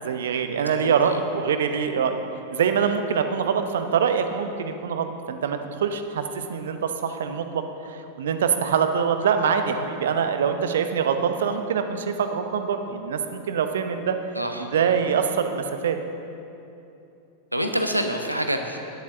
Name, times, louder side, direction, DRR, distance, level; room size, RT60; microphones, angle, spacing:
voice 1, 0.0-2.2 2.5-6.2 6.5-14.2 14.6-16.0, right 7 dB, 60° right, 8 dB, 0.8 m, -24 dB
voice 2, 0.8-1.2 14.3-14.7 17.5-18.8, equal, 90° right, 5 dB, 0.9 m, -26 dB
10.5 x 8.3 x 6.6 m, 2.8 s
figure-of-eight pair, 90°, 0 cm